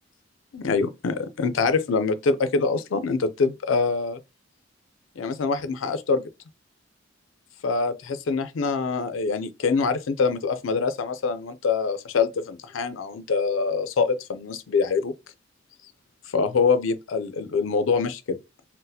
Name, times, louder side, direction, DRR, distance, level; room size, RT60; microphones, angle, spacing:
voice 1, 0.5-4.2 5.2-6.2 7.6-15.1 16.3-18.4, left 4 dB, 85° left, 0.4 m, -24 dB
4.0 x 2.0 x 2.7 m
head